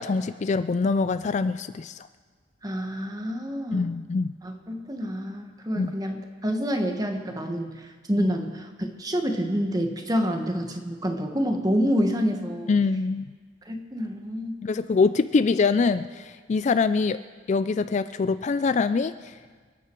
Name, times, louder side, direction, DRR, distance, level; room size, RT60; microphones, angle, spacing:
voice 1, 0.0-2.1 3.7-4.4 5.8-5.9 8.2-8.3 12.7-13.3 14.6-17.2 17.5-19.3, left 4 dB, 40° left, 12 dB, 0.3 m, -24 dB
voice 2, 2.6-3.9 4.4-12.7 13.6-14.6, equal, 20° right, 4 dB, 1.4 m, -28 dB
27.5 x 9.3 x 4.6 m, 1.5 s
head